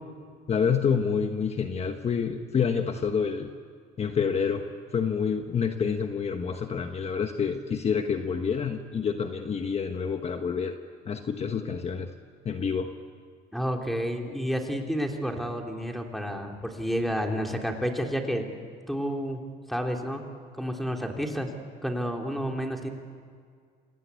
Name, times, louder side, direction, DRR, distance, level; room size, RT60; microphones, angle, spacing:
voice 1, 0.5-3.5 4.0-4.7 4.9-10.8 11.1-12.1 12.4-12.9, left 6 dB, 40° left, 6 dB, 1.3 m, -28 dB
voice 2, 13.5-18.5 18.9-20.3 20.6-21.5 21.8-22.9, equal, ahead, 2 dB, 3.1 m, -30 dB
27.5 x 18.5 x 8.3 m, 2.1 s
cardioid pair, 110°, 17 cm